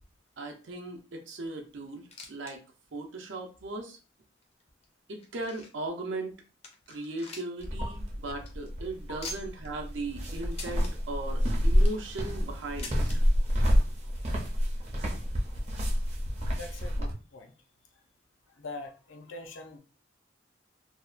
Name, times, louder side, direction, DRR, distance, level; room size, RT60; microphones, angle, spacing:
voice 1, 0.4-2.6 2.9-4.0 5.1-6.3 6.9-13.0, right 2 dB, 80° right, 3 dB, 0.6 m, -38 dB
sound 1, 1.9-2.6 2.8-2.9 3.6-3.7 4.4-5.9 6.3-6.4 6.6-7.7 8.0-8.1 8.3-8.5 9.2-9.7 10.5-10.9 11.5-12.1 12.8-13.2 14.1-14.2 14.4-14.5 15.4-15.5, left 2 dB, 30° left, 0.4 m, -44 dB
sound 2, 7.6-17.1, equal, 35° right, 0.5 m, -28 dB
voice 2, 16.4-17.5 18.6-19.8, left 2 dB, 90° left, 4 dB, 0.5 m, -43 dB
2.7 x 2.1 x 2.4 m, 0.34 s
head